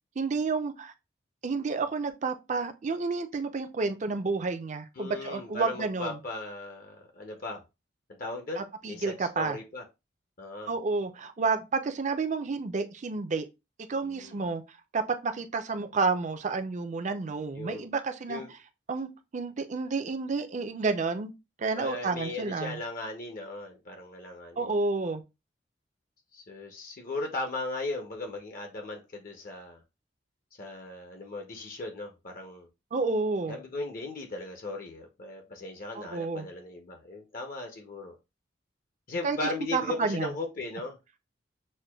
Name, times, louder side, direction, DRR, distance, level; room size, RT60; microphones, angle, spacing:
voice 1, 0.2-0.9 1.4-6.2 8.6-9.6 10.7-13.5 13.9-14.6 14.9-18.4 18.9-21.3 21.6-22.8 24.6-25.2 32.9-33.6 35.9-36.5 39.2-39.4 39.7-40.3, right 4 dB, 40° right, 0.5 m, -30 dB
voice 2, 5.0-7.6 8.1-9.8 10.4-10.7 14.0-14.4 17.6-17.9 18.3-18.5 21.8-24.7 26.3-29.8 30.6-32.7 33.5-38.1 39.1-41.0, left 2 dB, 50° left, 0.7 m, -37 dB
6.3 x 2.2 x 2.2 m
head